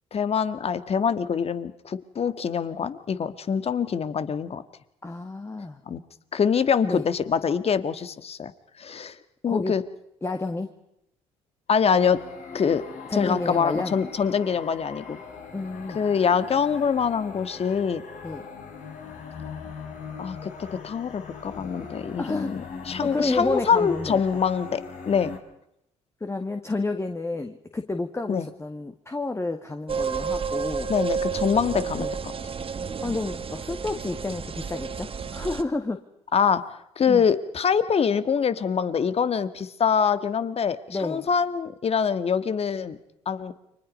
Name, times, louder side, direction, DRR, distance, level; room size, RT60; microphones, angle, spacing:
voice 1, 0.1-4.6 5.9-6.0 6.3-8.5 8.8-9.8 11.7-12.2 12.5-12.8 13.1-15.2 15.9-18.0 20.2-25.3 28.3-28.5 30.9-32.1 36.3-36.6 36.9-43.0 43.2-43.5, left 6 dB, 45° left, 12 dB, 1.7 m, -24 dB
voice 2, 5.0-5.8 6.8-7.1 9.5-9.8 10.2-10.7 13.1-14.0 15.5-16.0 18.2-18.5 22.2-22.6 22.9-24.2 26.2-30.9 32.0-32.1 33.0-36.0 37.1-37.2 40.9-41.3, left 2 dB, 20° left, 6 dB, 1.9 m, -30 dB
Power to my soul, 11.7-25.4, left 5 dB, 60° left, 4.8 m, -40 dB
sound 1, 29.9-35.6, right 5 dB, 40° right, 1.8 m, -31 dB
30.0 x 24.0 x 5.4 m, 0.80 s
hypercardioid pair, 55°, 15 cm